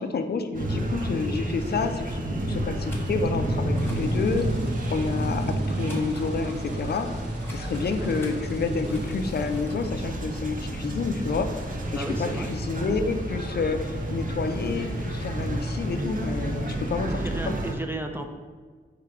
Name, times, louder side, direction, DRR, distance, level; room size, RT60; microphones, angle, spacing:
voice 1, 0.0-2.2 2.5-4.5 4.9-7.1 7.5-11.5 11.9-17.1, left 4 dB, 55° left, 7 dB, 0.4 m, -29 dB
sound 1, 0.5-17.7, right 1 dB, 45° right, 0.7 m, -30 dB
sound 2, 2.8-3.5 3.7-4.0 4.3-8.3 8.8-9.9, left 1 dB, 10° left, 1.0 m, -49 dB
sound 3, 3.8-9.6, right 2 dB, 60° right, 1.0 m, -53 dB
voice 2, 7.8-8.1 8.8-9.1 11.9-12.5 17.1-18.3, right 2 dB, 10° right, 4 dB, 0.3 m, -35 dB
3.3 x 3.2 x 4.8 m, 1.5 s
wide cardioid pair, 100°, 20 cm